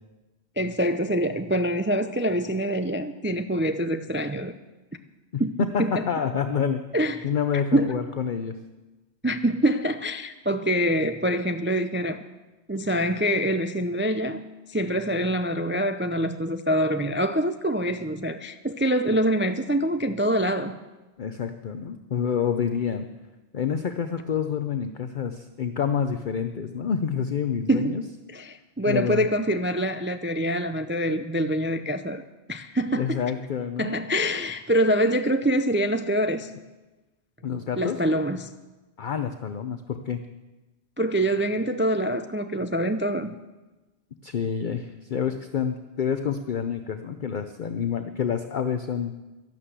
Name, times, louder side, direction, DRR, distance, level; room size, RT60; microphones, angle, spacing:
voice 1, 0.6-4.5 5.4-6.1 6.9-7.3 7.7-8.0 9.2-12.2 12.7-14.4 14.7-20.8 27.7-28.0 28.3-33.2 33.8-36.5 37.8-38.5 41.0-43.3, equal, 20° right, 9 dB, 0.3 m, -25 dB
voice 2, 5.7-6.8 7.2-8.6 21.2-23.1 23.5-28.0 28.9-29.2 32.9-34.0 37.4-38.0 39.0-40.2 44.2-49.1, left 7 dB, 50° left, 8 dB, 0.8 m, -28 dB
12.0 x 12.0 x 8.1 m, 1.1 s
omnidirectional pair, 1.2 m